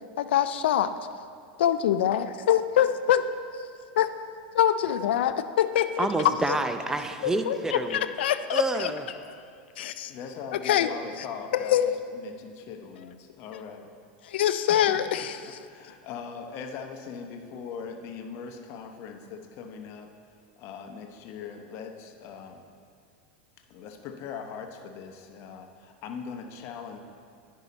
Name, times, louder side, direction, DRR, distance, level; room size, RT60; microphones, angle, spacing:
voice 1, 0.2-0.9 1.6-3.2 3.6-3.7 4.0-4.1 4.5-6.1 6.5-6.6 7.2-8.9 9.8-10.1 10.6-10.9 11.5-11.9 14.2-15.6, left 10 dB, 80° left, 10 dB, 0.4 m, -24 dB
voice 2, 6.0-8.0 8.5-9.0, right 2 dB, 10° right, 7 dB, 0.5 m, -28 dB
voice 3, 10.1-11.8 12.1-13.9 14.7-20.1 20.6-22.6 23.7-27.0, left 6 dB, 50° left, 5 dB, 0.9 m, -40 dB
10.0 x 5.6 x 4.1 m, 2.3 s
hypercardioid pair, 115°, 6 cm